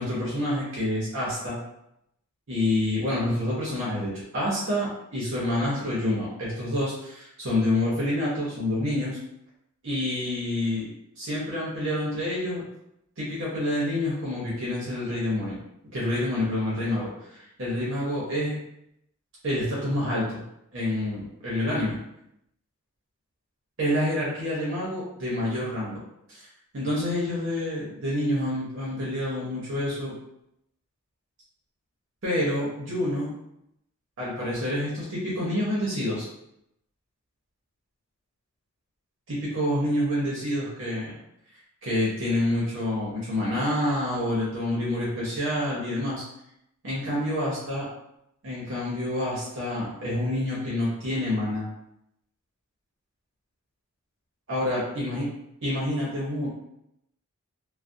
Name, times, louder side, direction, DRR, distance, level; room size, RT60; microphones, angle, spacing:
voice 1, 0.0-1.6 2.5-9.2 9.8-12.6 13.2-15.6 15.9-18.6 19.4-20.4 20.7-22.0 23.8-26.0 26.3-26.5 26.7-30.1 32.2-33.3 34.2-36.3 39.3-41.0 41.8-46.2 46.8-47.8 48.4-51.7 54.5-55.3 55.6-56.5, left 1 dB, 60° right, -7 dB, 0.8 m, -28 dB
2.4 x 2.1 x 2.6 m, 0.80 s
head